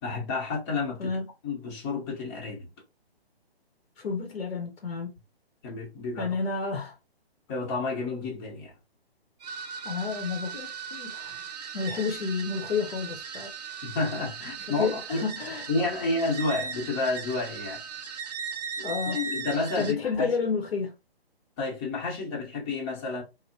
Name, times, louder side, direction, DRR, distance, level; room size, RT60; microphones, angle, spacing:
voice 1, 0.0-1.1 1.4-2.7 5.6-6.4 7.5-8.7 13.8-15.3 15.7-17.8 18.8-20.3 21.6-23.2, left 3 dB, 25° left, 0.9 m, -30 dB
voice 2, 4.0-5.1 6.2-6.9 9.8-11.4 11.7-13.5 14.7-15.7 18.8-19.2 19.8-20.9, left 5 dB, 70° left, 0.9 m, -30 dB
sound 1, 9.4-19.9, right 6 dB, 40° right, 0.4 m, -38 dB
3.3 x 2.1 x 2.6 m
hypercardioid pair, 145°, 31 cm